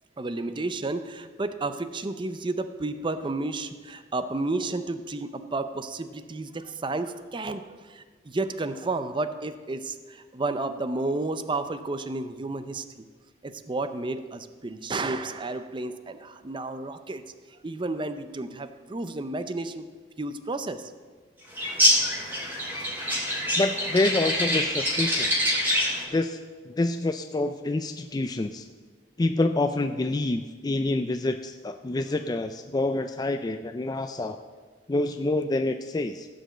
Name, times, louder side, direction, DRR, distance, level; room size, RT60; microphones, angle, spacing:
voice 1, 0.2-12.8 13.4-17.2 17.6-19.9 20.2-20.9, right 2 dB, 30° right, 10 dB, 0.6 m, -31 dB
sound 1, 21.6-26.0, equal, 10° right, 2.7 m, -25 dB
voice 2, 23.6-25.3 26.1-26.4 26.7-28.7 29.2-34.4 34.9-36.3, left 2 dB, 20° left, 7 dB, 0.4 m, -27 dB
15.5 x 5.3 x 7.8 m, 1.5 s
head